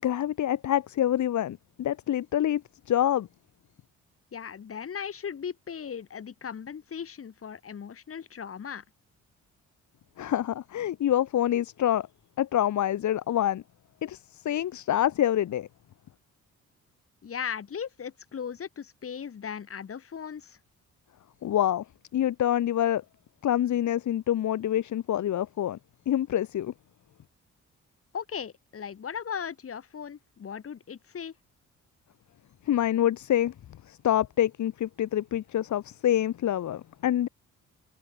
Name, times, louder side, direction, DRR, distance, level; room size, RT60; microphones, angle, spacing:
voice 1, 0.0-3.3 10.2-12.1 12.4-13.6 14.0-15.7 21.4-21.8 22.1-23.0 23.4-25.8 26.0-26.7 32.7-33.5 33.9-37.3, left 11 dB, 70° left, 5.1 m, -26 dB
voice 2, 4.3-8.8 17.2-20.6 28.1-31.3, left 7 dB, 50° left, 5.2 m, -37 dB
cardioid pair, 90°, 30 cm